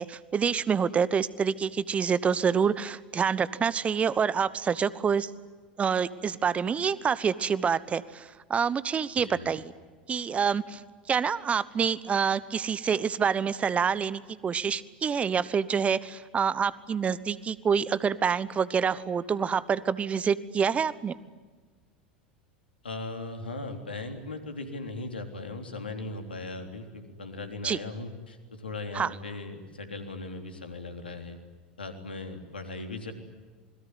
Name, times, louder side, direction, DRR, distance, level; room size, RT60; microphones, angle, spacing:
voice 1, 0.0-5.3 5.8-9.7 10.1-10.8 11.1-21.1 27.6-27.8 28.9-29.1, right 6 dB, 25° right, 18 dB, 1.1 m, -27 dB
voice 2, 9.1-9.5 22.8-31.4 31.8-33.1, left 2 dB, 85° left, 6 dB, 3.5 m, -38 dB
27.5 x 21.5 x 9.6 m, 1.4 s
figure-of-eight pair, 85°, 5 cm